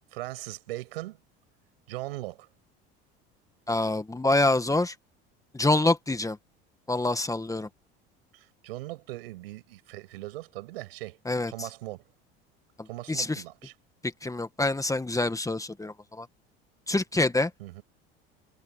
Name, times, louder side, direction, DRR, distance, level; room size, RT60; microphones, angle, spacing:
voice 1, 0.1-1.2 1.9-2.5 8.3-11.2 11.5-12.0 12.9-13.7 17.6-17.8, right 18 dB, 85° right, 7.9 m, -39 dB
voice 2, 3.7-4.9 5.5-6.4 6.9-7.7 11.2-11.5 13.1-13.4 14.2-16.3 16.9-17.5, left 2 dB, 10° left, 1.7 m, -26 dB
hypercardioid pair, 80°, 29 cm